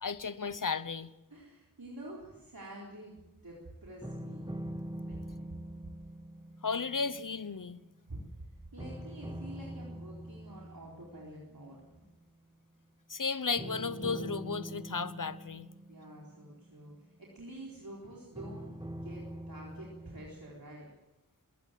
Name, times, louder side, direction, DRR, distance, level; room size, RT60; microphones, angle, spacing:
voice 1, 0.0-1.1 6.6-7.8 13.1-15.7, left 5 dB, 65° left, 16 dB, 0.9 m, -34 dB
voice 2, 1.3-4.6 5.0-5.7 8.1-8.2 8.7-11.8 15.9-16.9 17.2-18.7 19.0-20.9, right 1 dB, 85° right, -4 dB, 4.1 m, -48 dB
sound 1, 4.0-8.4 8.8-12.1 13.6-17.6 18.3-20.5, equal, 15° right, 1.7 m, -44 dB
21.5 x 17.5 x 7.6 m, 1.0 s
wide cardioid pair, 45°, 34 cm